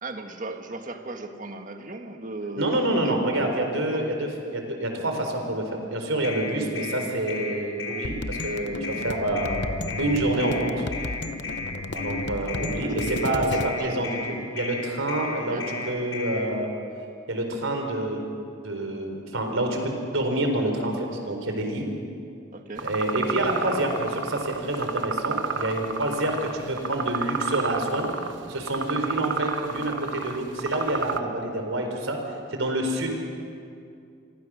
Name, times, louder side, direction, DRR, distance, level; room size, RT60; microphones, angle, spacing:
voice 1, 0.0-2.7 3.0-3.6 3.9-4.0 11.9-12.2 12.8-14.1 15.5-15.7 22.5-22.9, right 2 dB, 40° right, 5 dB, 1.6 m, -38 dB
voice 2, 2.6-9.6 10.0-10.9 12.0-16.7 17.3-18.2 18.6-21.9 22.8-28.1 28.5-32.2 32.5-33.1, right 1 dB, 85° right, 3 dB, 4.3 m, -27 dB
sound 1, 6.2-16.4, left 4 dB, 90° left, 5.4 m, -34 dB
sound 2, 8.0-13.7, left 2 dB, 60° left, 0.8 m, -33 dB
sound 3, 22.8-31.2, right 4 dB, 70° right, 1.2 m, -31 dB
28.0 x 24.0 x 6.4 m, 2.4 s
head